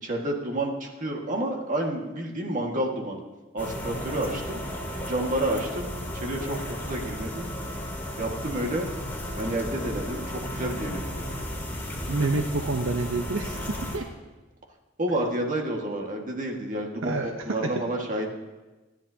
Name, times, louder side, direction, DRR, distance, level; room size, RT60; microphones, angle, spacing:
voice 1, 0.0-3.2 3.5-4.6 5.1-7.5 8.2-8.9 9.4-11.3 15.0-18.3, right 1 dB, 40° right, 0 dB, 1.8 m, -30 dB
sound 1, 3.6-14.0, equal, 10° left, 2.5 m, -34 dB
voice 2, 12.1-14.1 17.0-17.7, right 3 dB, 75° right, 4 dB, 0.8 m, -28 dB
28.5 x 10.5 x 2.8 m, 1.2 s
head